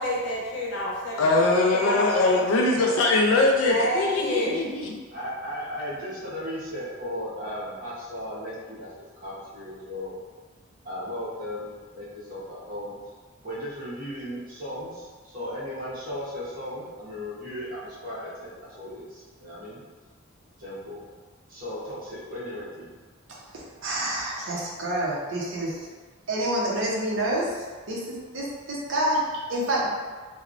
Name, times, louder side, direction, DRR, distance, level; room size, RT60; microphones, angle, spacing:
voice 1, 0.0-1.3 1.8-2.7 3.6-4.6, left 1 dB, 60° left, -4 dB, 0.7 m, -29 dB
voice 2, 1.2-5.0, left 2 dB, 80° left, 0 dB, 0.3 m, -22 dB
voice 3, 5.1-8.9 9.2-10.2 10.8-12.9 13.4-19.8 20.6-21.0 21.5-22.9, equal, 45° right, -9 dB, 1.0 m, -36 dB
voice 4, 23.3-25.9 26.3-29.9, right 1 dB, 65° right, -4 dB, 0.6 m, -28 dB
3.0 x 2.0 x 2.4 m, 1.4 s
head